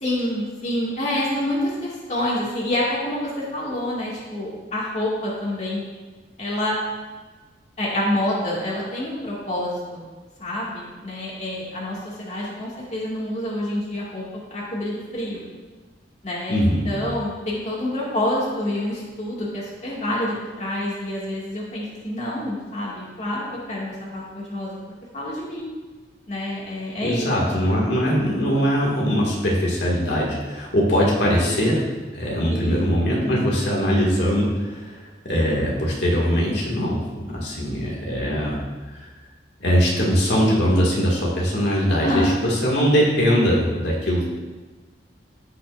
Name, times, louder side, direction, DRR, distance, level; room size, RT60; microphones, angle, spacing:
voice 1, 0.0-5.8 6.4-6.8 7.8-10.0 10.4-14.3 14.5-15.4 16.2-24.8 25.1-25.7 26.3-27.3 27.7-27.9 32.5-32.9 41.9-42.4, left 1 dB, 40° left, -5 dB, 2.0 m, -27 dB
voice 2, 16.5-16.9 27.0-38.6 38.9-39.1 39.6-44.3, equal, 75° left, -4 dB, 2.0 m, -21 dB
15.0 x 5.9 x 2.5 m, 1.3 s
head